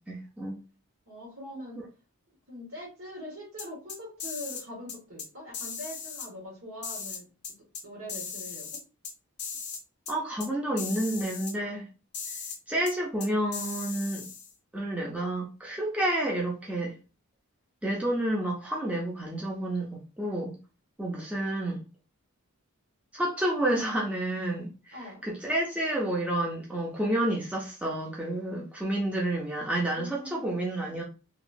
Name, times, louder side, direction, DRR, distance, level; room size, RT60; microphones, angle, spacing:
voice 1, 0.1-0.6 10.1-11.9 12.7-14.2 14.7-16.9 17.8-19.9 20.2-20.5 21.0-21.8 23.1-31.0, right 1 dB, 5° right, 0.4 m, -30 dB
voice 2, 1.1-1.8 2.5-7.3 7.8-8.7 24.9-25.2 29.9-30.6, left 1 dB, 70° right, 1.5 m, -42 dB
sound 1, 3.6-4.6 4.9-5.3 5.5-6.3 6.8-7.8 8.1-9.1 9.4-9.8 10.1-10.2 10.4-10.5 10.8-11.5 12.1-12.6 12.9-13.0 13.2-14.5, left 6 dB, 50° left, 0.7 m, -38 dB
2.9 x 2.3 x 2.5 m
head